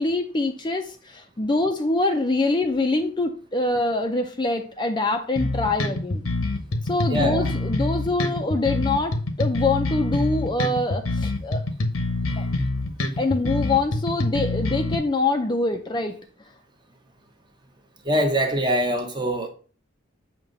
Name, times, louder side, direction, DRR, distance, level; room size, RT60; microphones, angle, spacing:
voice 1, 0.0-6.3 6.8-11.6 12.4-12.5 13.2-16.2, left 2 dB, 20° left, 0.5 m, -24 dB
sound 1, 5.4-15.0, left 2 dB, 85° left, 1.0 m, -26 dB
voice 2, 7.1-7.5 18.0-19.5, right 1 dB, 20° right, 0.9 m, -23 dB
7.4 x 2.9 x 5.2 m
head